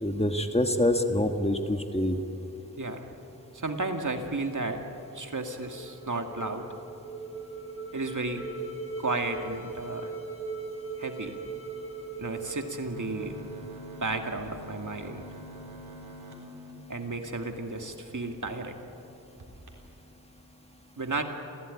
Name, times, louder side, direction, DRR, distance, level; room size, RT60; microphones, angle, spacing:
voice 1, 0.0-2.2, left 1 dB, 15° left, 6 dB, 1.6 m, -26 dB
voice 2, 3.5-4.8 5.1-6.6 7.9-8.4 9.0-10.1 11.0-11.4 12.2-13.3 14.0-15.3 16.9-18.8 21.0-21.2, right 2 dB, 55° right, 4 dB, 2.2 m, -33 dB
sound 1, 5.5-14.4, right 4 dB, 40° left, 3.2 m, -40 dB
sound 2, 12.8-17.9 18.4-18.5 18.8-19.0 19.4-19.7, left 1 dB, 90° right, 3.9 m, -46 dB
28.0 x 16.5 x 9.9 m, 2.9 s
wide cardioid pair, 65°, 37 cm